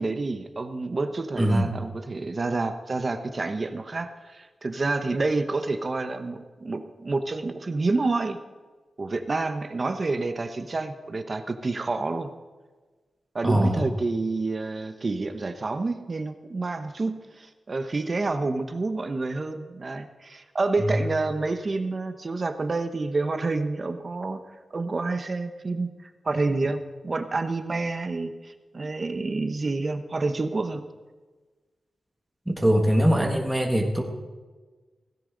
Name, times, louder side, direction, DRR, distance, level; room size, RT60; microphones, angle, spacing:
voice 1, 0.0-8.4 9.0-12.3 13.3-24.4 24.7-30.8, right 3 dB, 35° right, 8 dB, 0.8 m, -28 dB
voice 2, 1.4-1.8 13.4-13.9 20.8-20.9 32.5-34.0, equal, 10° right, 1 dB, 1.6 m, -22 dB
16.5 x 15.5 x 3.9 m, 1.3 s
wide cardioid pair, 155°, 0 cm